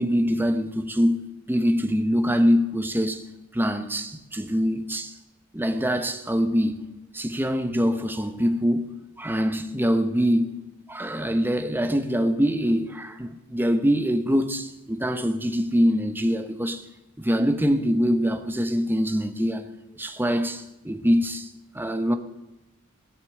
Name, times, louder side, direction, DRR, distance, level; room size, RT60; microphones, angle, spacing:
voice 1, 0.0-3.2 3.5-5.1 5.5-6.8 7.1-10.6 10.9-16.8 17.2-19.7 20.0-21.5 21.7-22.2, equal, 10° right, 0.8 m, -24 dB
17.5 x 6.7 x 6.8 m
head